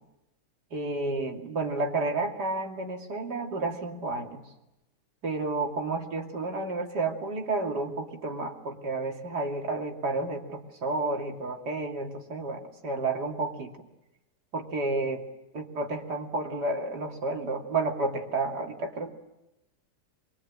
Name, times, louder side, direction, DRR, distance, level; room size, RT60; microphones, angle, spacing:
voice 1, 0.7-4.5 5.2-13.8 14.5-15.2 15.5-19.1, right 3 dB, 80° right, 2 dB, 3.4 m, -31 dB
25.0 x 22.0 x 8.8 m, 0.96 s
omnidirectional pair, 1.8 m